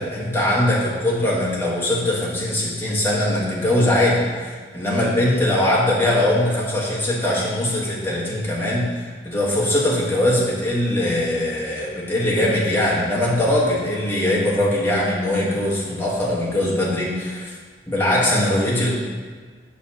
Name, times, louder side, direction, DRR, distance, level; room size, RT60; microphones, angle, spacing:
voice 1, 0.0-17.5 17.9-18.9, left 1 dB, 15° left, -6 dB, 1.3 m, -21 dB
6.6 x 6.2 x 2.8 m, 1.5 s
head